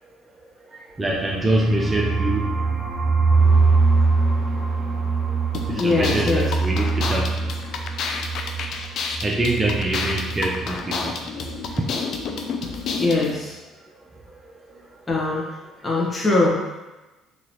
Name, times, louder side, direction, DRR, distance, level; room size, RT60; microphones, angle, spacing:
voice 1, 1.0-2.4 5.8-7.3 9.2-11.1, right 1 dB, 25° right, -2 dB, 0.6 m, -24 dB
sound 1, 1.1-10.7 11.0-11.1 11.4-11.8, right 4 dB, 55° right, 1.5 m, -23 dB
sound 2, 5.5-13.3, left 5 dB, 60° left, 0.4 m, -30 dB
voice 2, 5.7-6.5 12.9-13.5 15.1-15.4 15.8-16.5, left 2 dB, 20° left, -4 dB, 1.3 m, -21 dB
3.8 x 2.9 x 3.0 m, 1.1 s
hypercardioid pair, 65°, 0 cm